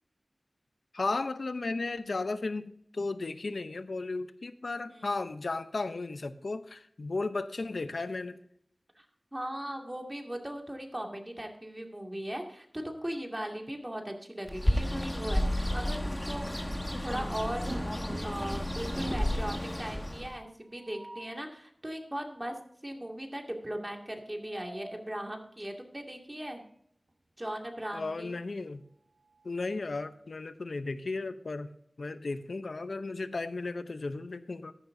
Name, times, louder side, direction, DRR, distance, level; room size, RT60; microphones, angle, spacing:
voice 1, 0.9-8.4 27.9-28.9 29.4-31.7 32.0-34.7, left 3 dB, 80° left, 11 dB, 0.7 m, -35 dB
voice 2, 9.3-16.5 17.0-17.7 18.2-22.6 22.8-26.6 27.4-28.3, right 1 dB, 20° right, 2 dB, 2.3 m, -38 dB
Bird, 14.5-20.4, left 1 dB, 15° left, 1.3 m, -32 dB
sound 1, 17.7-18.6 19.0-19.5 20.7-21.4 24.1-25.1 26.5-26.7 27.1-27.2 28.7-30.0, right 1 dB, 55° right, 1.4 m, -45 dB
14.5 x 10.5 x 2.7 m, 0.69 s
wide cardioid pair, 45°, 0 cm